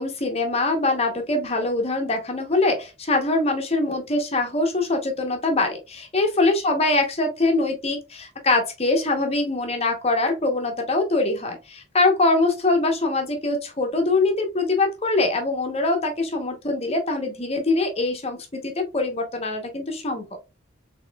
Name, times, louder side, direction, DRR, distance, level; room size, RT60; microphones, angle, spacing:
voice 1, 0.0-20.3, left 2 dB, 30° left, 0.8 m, -23 dB
4.1 x 3.6 x 2.2 m
head